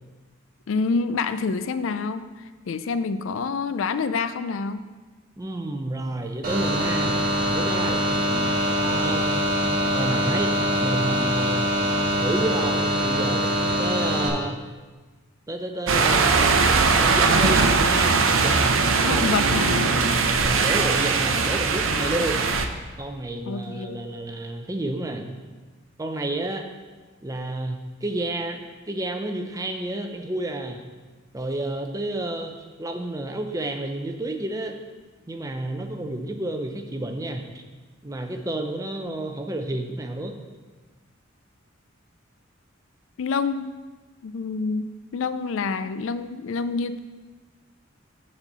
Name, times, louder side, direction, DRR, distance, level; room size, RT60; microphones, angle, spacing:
voice 1, 0.7-2.3 2.7-4.8 19.0-19.9 23.5-24.0 43.2-43.8 44.2-47.0, left 4 dB, 75° left, 12 dB, 0.4 m, -27 dB
voice 2, 5.4-7.2 7.5-8.2 8.8-9.4 9.9-10.5 10.8-11.7 12.2-13.4 13.8-14.6 15.5-16.5 17.0-18.6 19.0-19.3 20.4-22.5 23.0-25.3 26.0-26.7 27.2-30.8 31.3-34.7 35.3-37.6 38.0-40.3, right 1 dB, 15° right, 4 dB, 0.6 m, -30 dB
sound 1, 6.4-14.3, equal, 45° right, 1.6 m, -23 dB
sound 2, 15.9-22.7, right 4 dB, 85° right, 0.6 m, -20 dB
sound 3, 18.8-19.7 19.9-20.8 21.2-22.1 22.4-22.7 23.0-23.1 23.6-23.7, equal, 25° left, 1.1 m, -37 dB
7.0 x 4.3 x 6.7 m, 1.3 s
head